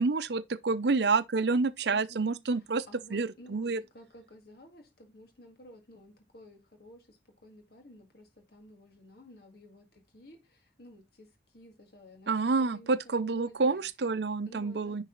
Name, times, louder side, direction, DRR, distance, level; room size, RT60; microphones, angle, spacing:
voice 1, 0.0-2.8 3.1-3.8 12.3-15.0, right 4 dB, 65° right, 0.6 m, -28 dB
voice 2, 1.9-13.9 14.5-15.0, equal, 60° left, 1.9 m, -54 dB
10.0 x 4.0 x 3.8 m
head